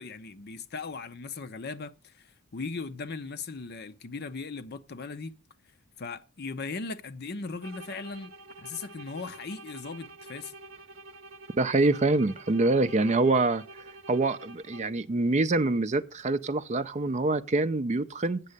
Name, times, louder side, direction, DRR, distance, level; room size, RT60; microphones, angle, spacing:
voice 1, 0.0-5.3 6.0-8.3 8.6-10.5, left 4 dB, 45° left, 0.6 m, -38 dB
sound 1, 7.6-15.1, right 3 dB, 65° right, 0.8 m, -48 dB
voice 2, 11.6-13.6 14.1-18.4, right 2 dB, 30° right, 0.5 m, -25 dB
8.3 x 6.5 x 6.6 m
head